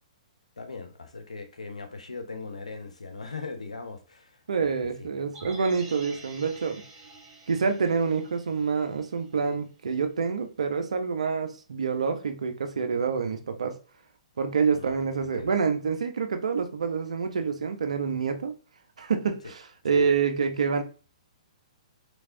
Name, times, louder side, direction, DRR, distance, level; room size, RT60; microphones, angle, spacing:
voice 1, 0.6-4.7 5.0-5.1 14.7-15.5 19.9-20.0, left 4 dB, 85° left, 0.7 m, -40 dB
voice 2, 4.5-6.8 7.5-13.8 14.4-18.5 19.0-20.8, right 5 dB, 75° right, 0.6 m, -27 dB
sound 1, 5.3-9.5 9.8-9.9, right 2 dB, 30° right, 1.8 m, -48 dB
3.4 x 3.2 x 2.5 m
hypercardioid pair, 125°, 4 cm